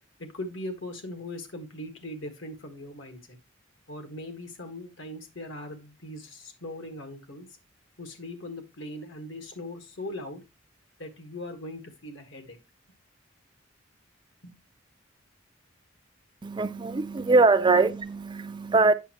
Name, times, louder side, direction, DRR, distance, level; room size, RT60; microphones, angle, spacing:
voice 1, 0.2-3.4 3.9-7.5 8.0-10.4 11.0-12.6 14.4-14.6 17.7-17.8, left 1 dB, 70° left, 1.6 m, -40 dB
voice 2, 16.4-18.9, right 3 dB, 25° right, 0.4 m, -22 dB
8.3 x 6.4 x 2.9 m
head